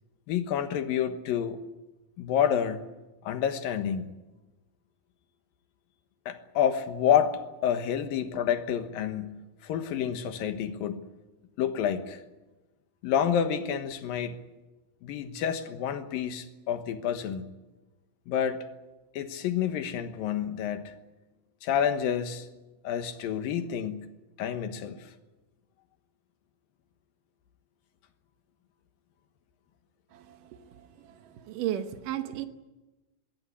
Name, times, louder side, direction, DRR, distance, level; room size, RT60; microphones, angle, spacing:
voice 1, 0.3-1.6 2.2-2.8 3.2-4.1 6.3-11.1 11.6-12.2 13.0-14.4 15.0-17.4 18.3-18.6 19.1-21.0 21.6-22.5 22.8-24.1 24.4-25.1, left 8 dB, 85° left, 3.1 m, -29 dB
voice 2, 31.4-32.5, right 11 dB, 75° right, 2.6 m, -33 dB
21.0 x 17.0 x 9.7 m
omnidirectional pair, 4.0 m